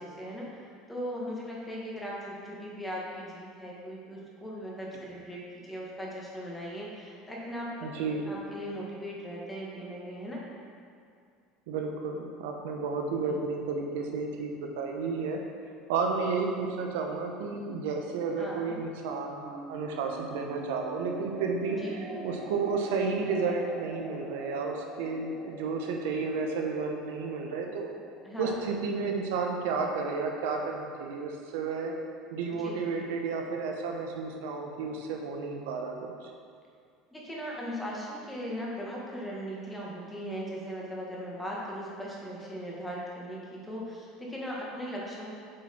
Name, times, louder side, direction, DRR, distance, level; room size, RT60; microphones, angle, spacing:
voice 1, 0.0-10.4 13.3-13.4 18.4-18.8 21.8-22.1 28.2-28.7 32.6-32.8 37.1-45.4, equal, 5° left, -4 dB, 1.3 m, -38 dB
voice 2, 7.8-8.3 11.7-15.4 15.9-21.8 22.2-27.9 28.4-31.9 32.3-36.3, right 4 dB, 90° right, 2 dB, 0.8 m, -32 dB
sound 1, 19.1-31.7, right 1 dB, 25° right, 1.4 m, -45 dB
7.6 x 4.4 x 4.3 m, 2.3 s
cardioid pair, 145°, 0 cm